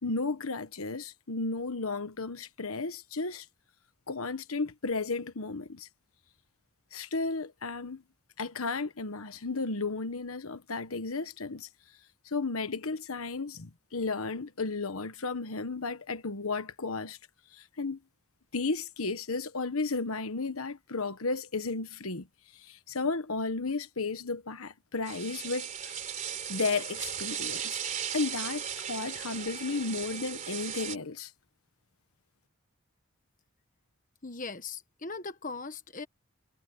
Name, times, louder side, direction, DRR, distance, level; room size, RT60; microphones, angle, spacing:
voice 1, 0.0-3.5 4.1-5.9 6.9-8.0 8.4-11.7 12.2-17.2 17.5-18.0 18.5-22.3 22.5-26.0 26.5-27.8 28.1-31.3, left 3 dB, 85° left, 1.3 m, -33 dB
sound 1, 25.1-31.0, right 8 dB, 35° right, 3.6 m, -37 dB
voice 2, 34.2-36.1, left 4 dB, 40° left, 1.4 m, -39 dB
head